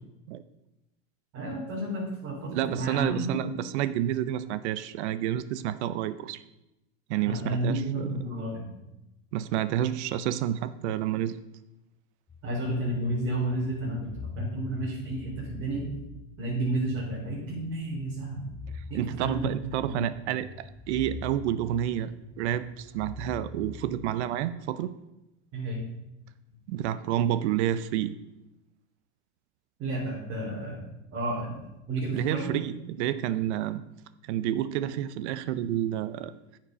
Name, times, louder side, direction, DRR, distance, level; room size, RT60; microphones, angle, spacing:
voice 1, 1.3-3.4 7.2-8.7 12.4-14.1 14.4-15.9 16.4-18.5 18.9-19.5 19.8-20.0 25.5-25.8 29.8-31.5 31.9-32.5, right 1 dB, 45° right, -7 dB, 4.3 m, -31 dB
voice 2, 2.5-6.4 7.1-8.1 9.3-11.4 18.9-20.5 20.9-22.1 22.4-24.9 26.7-28.2 32.1-33.8 34.3-36.3, right 11 dB, 80° right, 14 dB, 0.7 m, -29 dB
sound 1, 12.3-24.4, left 4 dB, 10° left, 0.5 m, -44 dB
9.4 x 7.7 x 5.2 m, 0.92 s
supercardioid pair, 125°, 34 cm